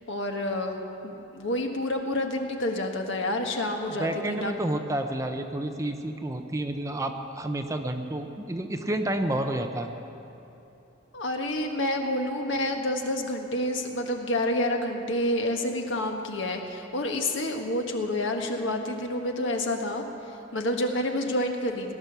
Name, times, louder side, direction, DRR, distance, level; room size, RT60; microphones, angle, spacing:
voice 1, 0.1-0.8 1.0-4.5 11.1-20.0 20.5-21.9, left 1 dB, 70° left, 3 dB, 1.4 m, -28 dB
voice 2, 3.9-9.9, right 1 dB, 15° right, 5 dB, 0.6 m, -30 dB
18.0 x 10.5 x 6.8 m, 3.0 s
head